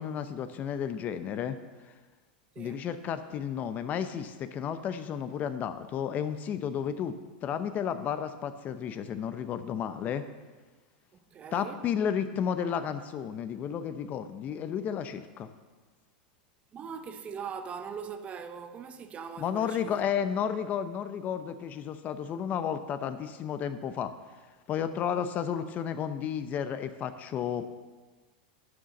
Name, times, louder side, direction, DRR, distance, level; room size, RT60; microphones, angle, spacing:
voice 1, 0.0-1.6 2.6-7.2 7.4-10.2 11.5-15.5 19.4-24.1 24.7-27.7, left 8 dB, 35° left, 0.7 m, -32 dB
voice 2, 2.5-2.9 11.3-11.8 16.7-20.0 25.1-25.3, right 6 dB, 25° right, 0.7 m, -41 dB
11.0 x 6.4 x 7.1 m
supercardioid pair, 130°, 5 cm